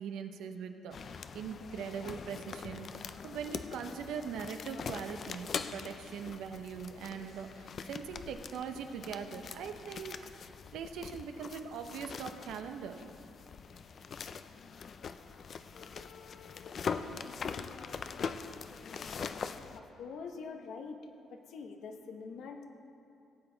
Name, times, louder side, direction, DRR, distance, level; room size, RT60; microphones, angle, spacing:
voice 1, 0.0-10.4 10.7-13.0, right 7 dB, 85° right, 7 dB, 0.7 m, -41 dB
sound 1, 0.9-19.8, left 6 dB, 50° left, 0.4 m, -42 dB
voice 2, 19.7-21.0 21.3-22.6, left 5 dB, 75° left, 5 dB, 1.0 m, -44 dB
17.5 x 7.9 x 3.9 m, 2.7 s
cardioid pair, 90°, 0 cm